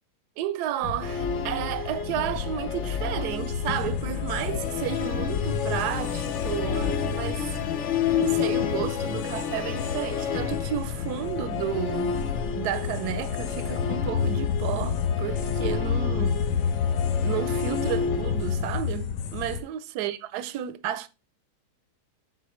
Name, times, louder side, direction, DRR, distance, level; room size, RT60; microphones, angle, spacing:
voice 1, 0.4-7.5 8.1-12.1 12.5-16.4 17.2-21.1, right 11 dB, 75° right, 1.1 m, -32 dB
sound 1, 0.8-19.6, left 7 dB, 80° left, 1.3 m, -30 dB
Musical instrument, 1.0-18.6, left 7 dB, 60° left, 0.8 m, -32 dB
9.5 x 4.0 x 3.0 m
omnidirectional pair, 1.8 m